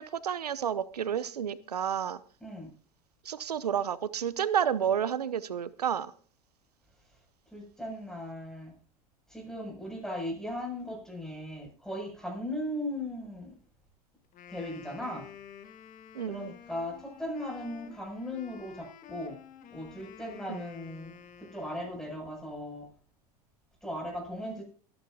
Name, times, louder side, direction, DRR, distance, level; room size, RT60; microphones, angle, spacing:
voice 1, 0.0-2.2 3.2-6.1 16.1-16.5 20.5-20.6, right 8 dB, 85° right, 18 dB, 0.8 m, -30 dB
voice 2, 7.5-8.7 9.3-13.6 14.5-15.2 16.3-19.4 19.7-21.1 21.4-22.9 23.8-24.6, left 1 dB, 5° left, 0 dB, 7.3 m, -37 dB
Wind instrument woodwind instrument, 14.2-22.3, left 9 dB, 40° left, 1.7 m, -51 dB
23.5 x 11.0 x 2.8 m, 0.43 s
hypercardioid pair, 85°, 20 cm